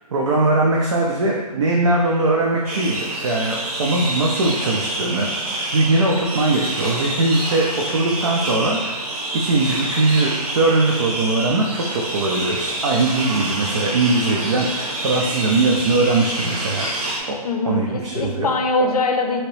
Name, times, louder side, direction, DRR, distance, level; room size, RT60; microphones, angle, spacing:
voice 1, 0.1-5.3 5.7-9.0 9.3-16.9 17.3-17.4 17.7-18.5, right 2 dB, 50° right, -2 dB, 0.4 m, -20 dB
sound 1, 2.6-17.2, right 1 dB, 70° right, 1.0 m, -27 dB
voice 2, 17.4-19.4, left 3 dB, 70° left, 3 dB, 0.6 m, -22 dB
2.9 x 2.8 x 3.0 m, 1.3 s
hypercardioid pair, 155°, 20 cm